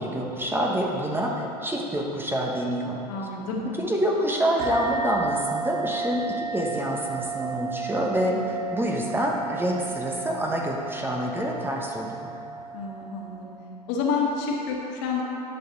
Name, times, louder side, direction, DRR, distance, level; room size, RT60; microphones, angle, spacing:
voice 1, 0.0-3.0 3.8-12.3, equal, 10° right, -1 dB, 1.0 m, -27 dB
voice 2, 3.1-3.6 8.3-8.7 12.7-13.5 13.9-15.2, left 5 dB, 60° left, -2 dB, 1.7 m, -29 dB
sound 1, 4.6-13.6, right 5 dB, 65° right, 1.2 m, -33 dB
10.5 x 6.0 x 3.9 m, 2.8 s
hypercardioid pair, 90°, 20 cm